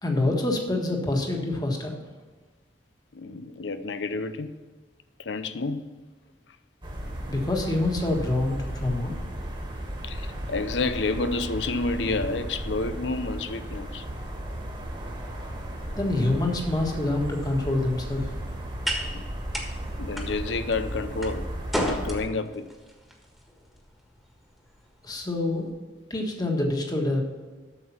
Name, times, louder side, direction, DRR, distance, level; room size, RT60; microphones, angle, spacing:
voice 1, 0.0-2.0 7.3-9.1 16.0-18.3 25.0-25.7 26.1-27.2, left 2 dB, 20° left, 1.5 m, -26 dB
voice 2, 3.1-4.5 5.2-5.8 10.0-14.0 19.1-19.2 20.0-21.5 21.7-22.7, left 3 dB, 90° left, 0.7 m, -29 dB
sound 1, 6.8-22.3, right 1 dB, 30° right, 1.6 m, -35 dB
sound 2, 17.7-25.7, equal, ahead, 1.5 m, -37 dB
8.2 x 6.8 x 5.8 m
head